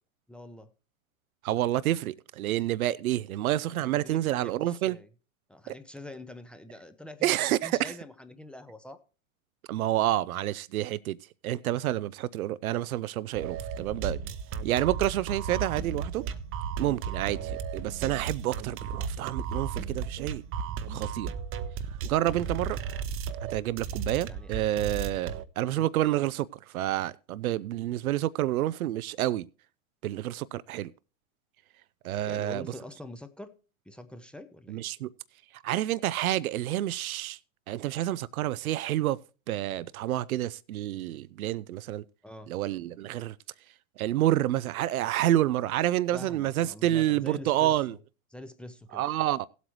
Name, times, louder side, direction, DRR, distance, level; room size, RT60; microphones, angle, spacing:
voice 1, 0.3-0.7 3.8-5.1 5.5-9.0 14.3-14.4 17.1-17.2 20.9-21.1 24.3-24.8 25.7-25.9 32.3-33.6 33.9-34.9 42.2-42.5 46.1-48.0 48.3-49.0, left 1 dB, 5° left, 0.6 m, -45 dB
voice 2, 1.4-5.0 5.7-5.8 7.2-7.9 9.7-11.2 11.4-14.2 14.6-16.2 16.8-20.4 20.9-21.3 22.0-22.8 23.5-26.5 26.7-29.4 30.0-30.9 32.0-32.7 34.7-35.1 35.5-37.4 37.7-39.2 39.5-42.0 42.5-43.4 44.0-48.0 48.9-49.5, right 13 dB, 85° right, 0.5 m, -28 dB
sound 1, 13.3-25.4, right 6 dB, 30° right, 0.7 m, -35 dB
17.5 x 8.1 x 3.1 m
hypercardioid pair, 110°, 42 cm